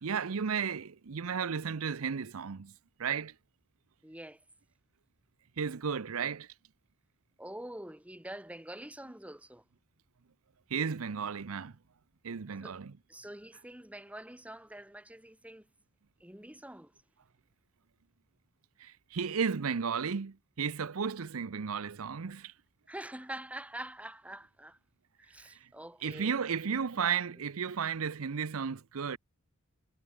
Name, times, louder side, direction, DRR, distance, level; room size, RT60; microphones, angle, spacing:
voice 1, 0.0-2.7 3.0-3.3 5.6-6.5 10.7-11.7 12.2-12.9 18.8-22.5 25.4-25.7 26.0-29.2, right 6 dB, 85° right, 0.7 m, -34 dB
voice 2, 4.0-4.4 7.4-9.6 12.6-12.8 13.1-15.7 16.2-16.9 22.9-24.8 25.2-26.4, right 1 dB, 5° right, 2.6 m, -45 dB
head